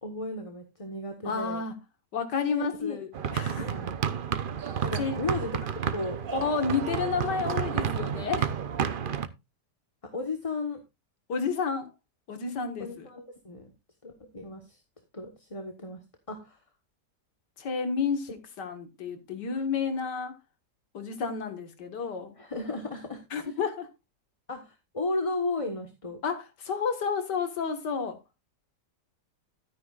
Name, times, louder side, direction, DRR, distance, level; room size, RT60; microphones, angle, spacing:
voice 1, 0.0-1.6 2.5-3.0 3.7-4.0 4.8-6.2 7.8-7.9 10.1-10.8 12.8-13.7 14.0-14.8 15.1-16.0 16.3-16.6 19.5-19.6 22.4-23.2 24.5-26.2, left 2 dB, 20° left, 1.2 m, -34 dB
voice 2, 1.2-1.7 2.1-3.7 5.0-5.2 6.3-8.5 11.3-11.9 12.3-13.1 17.6-20.4 20.9-22.4 23.3-23.9 26.2-28.2, left 5 dB, 85° left, 2.3 m, -31 dB
sound 1, 3.1-9.3, right 7 dB, 50° right, 0.6 m, -31 dB
13.0 x 9.5 x 2.4 m
omnidirectional pair, 1.8 m